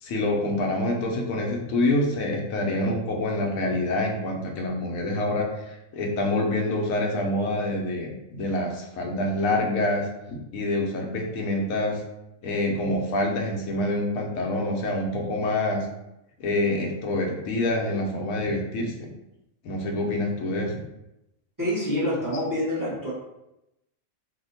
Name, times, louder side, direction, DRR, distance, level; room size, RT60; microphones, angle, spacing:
voice 1, 0.0-12.0 12.4-15.9 16.4-19.1 19.6-20.8, left 1 dB, 75° left, 0 dB, 1.1 m, -26 dB
voice 2, 21.6-23.1, equal, 15° right, -7 dB, 0.9 m, -26 dB
2.8 x 2.2 x 4.1 m, 0.89 s
omnidirectional pair, 1.4 m